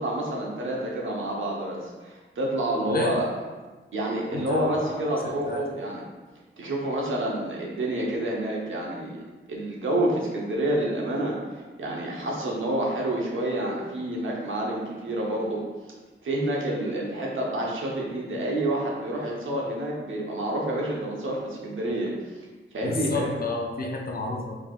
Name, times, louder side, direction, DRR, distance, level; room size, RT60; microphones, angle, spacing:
voice 1, 0.0-3.3 3.9-6.0 6.6-9.1 9.5-11.4 11.8-15.6 16.2-22.1 22.7-23.3, right 1 dB, 70° right, -3 dB, 1.0 m, -28 dB
voice 2, 2.9-3.2 4.3-5.6 22.8-24.6, left 3 dB, 45° left, 1 dB, 0.5 m, -31 dB
4.6 x 4.1 x 2.4 m, 1.3 s
wide cardioid pair, 155°, 21 cm